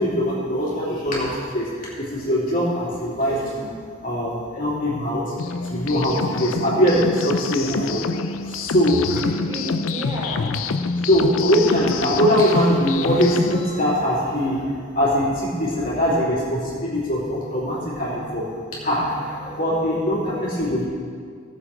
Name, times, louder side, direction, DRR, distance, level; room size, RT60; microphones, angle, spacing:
voice 1, 0.0-3.7 4.0-9.0 10.4-10.5 11.0-18.4 18.7-20.9, equal, 40° left, -7 dB, 3.3 m, -22 dB
sound 1, 5.4-13.7, left 4 dB, 80° left, 0.5 m, -27 dB
voice 2, 9.1-11.1 15.6-15.7 17.2-17.6 18.0-18.5 18.7-18.9 19.3-19.6 19.9-20.4, equal, 15° right, -7 dB, 3.8 m, -36 dB
17.0 x 7.4 x 5.0 m, 2.1 s
head